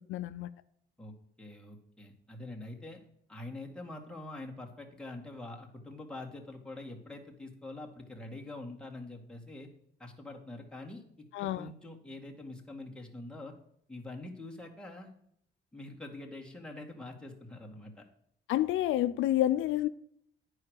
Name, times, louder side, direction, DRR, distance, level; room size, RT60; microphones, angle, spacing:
voice 1, 0.1-0.5 11.3-11.7 18.5-19.9, left 13 dB, 80° left, 0.4 m, -29 dB
voice 2, 1.0-3.0 3.3-9.7 10.0-13.5 13.9-15.1 15.7-18.1, left 2 dB, 5° left, 1.9 m, -45 dB
9.6 x 4.9 x 6.4 m
cardioid pair, 90°, 20 cm